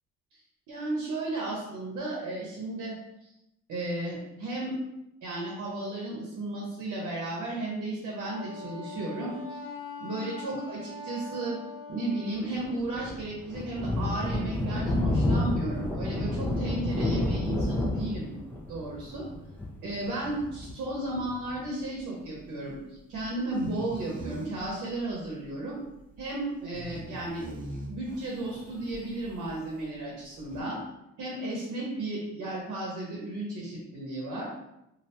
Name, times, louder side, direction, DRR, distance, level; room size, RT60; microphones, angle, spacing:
voice 1, 0.7-2.9 3.2-3.3 3.7-4.8 5.2-9.6 10.0-11.6 11.9-18.3 18.7-19.3 19.8-25.8 26.2-27.4 27.9-30.8 31.2-34.5, right 2 dB, 80° right, -3 dB, 0.8 m, -34 dB
Wind instrument woodwind instrument, 8.2-12.4, left 3 dB, 80° left, 0.6 m, -42 dB
Thunder, 12.5-21.6, left 1 dB, 10° left, 0.3 m, -30 dB
sound 1, 17.5-29.9 30.2-30.6, right 2 dB, 30° right, 0.7 m, -44 dB
2.6 x 2.1 x 2.8 m, 0.86 s
cardioid pair, 90°, 30 cm